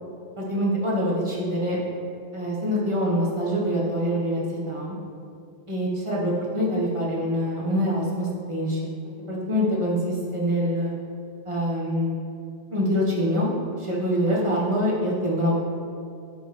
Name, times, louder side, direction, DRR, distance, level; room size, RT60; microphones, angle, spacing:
voice 1, 0.4-1.8 2.3-4.9 5.7-8.8 9.3-10.9 11.4-12.1 12.7-13.5 13.8-15.6, equal, 25° right, -5 dB, 1.5 m, -25 dB
10.0 x 5.4 x 3.4 m, 2.4 s
omnidirectional pair, 1.1 m